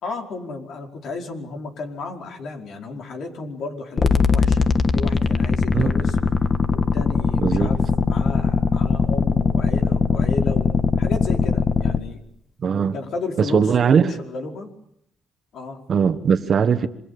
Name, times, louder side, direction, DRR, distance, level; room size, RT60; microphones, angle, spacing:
voice 1, 0.0-6.2 6.7-12.2 12.9-13.7 14.0-14.7 15.5-15.8, left 3 dB, 70° left, 5.1 m, -33 dB
sound 1, 4.0-12.0, left 4 dB, 40° left, 1.6 m, -20 dB
voice 2, 7.3-7.7 12.6-12.9 13.4-14.1 15.9-16.9, right 6 dB, 50° right, 1.6 m, -19 dB
27.5 x 24.5 x 7.0 m
cardioid pair, 90°, 0 cm